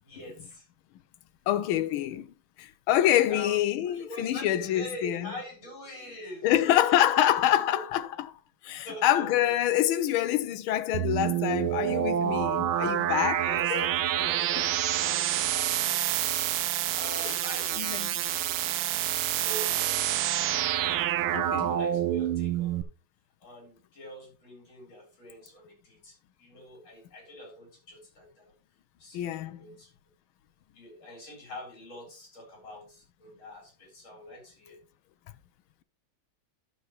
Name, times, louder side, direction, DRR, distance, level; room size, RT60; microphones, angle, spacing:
voice 1, 0.0-0.7 3.0-3.6 3.9-7.3 7.7-7.8 8.6-9.5 13.4-16.3 16.9-20.6 21.6-22.9 23.4-28.5 29.0-29.9 30.7-34.8, equal, 70° left, 4.9 m, -44 dB
voice 2, 1.5-2.3 2.6-5.3 6.4-8.3 8.6-13.4 13.7-13.8 17.8-18.1 21.3-21.7 29.1-29.7, left 12 dB, 90° left, 1.5 m, -26 dB
sound 1, 10.9-22.8, right 11 dB, 80° right, 1.5 m, -28 dB
12.0 x 6.3 x 3.1 m
omnidirectional pair, 2.2 m